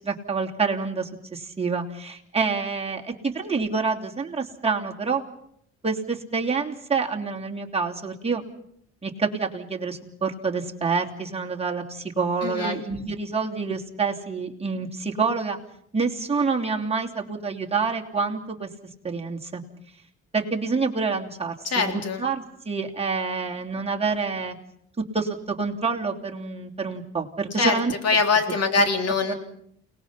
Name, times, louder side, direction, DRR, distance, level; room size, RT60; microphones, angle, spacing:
voice 1, 0.0-5.2 5.8-8.4 9.0-15.6 15.9-18.7 19.0-19.6 20.3-24.6 25.1-27.9 28.8-28.9 29.3-29.4, right 4 dB, 20° right, 0 dB, 3.0 m, -27 dB
voice 2, 12.4-12.8 21.7-22.2 27.6-27.7 28.0-29.3, left 4 dB, 55° left, 5 dB, 3.9 m, -23 dB
29.5 x 19.5 x 5.8 m, 0.69 s
cardioid pair, 90°, 30 cm